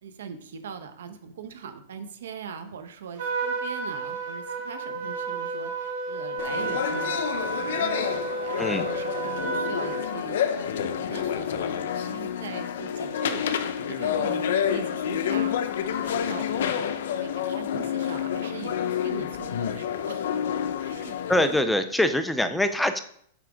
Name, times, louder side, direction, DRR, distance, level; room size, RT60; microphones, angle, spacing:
voice 1, 0.0-7.2 7.6-7.9 8.2-15.5 15.9-16.9 17.2-20.3 20.8-21.6 22.4-22.6, right 7 dB, 85° right, 8 dB, 0.9 m, -41 dB
Trumpet, 3.2-10.1, right 3 dB, 65° right, 1.7 m, -31 dB
sound 1, 6.4-21.6, left 8 dB, 75° left, 0.6 m, -29 dB
voice 2, 21.3-23.0, left 1 dB, 5° left, 9 dB, 0.4 m, -23 dB
7.5 x 3.5 x 5.0 m, 0.63 s
supercardioid pair, 155°, 0 cm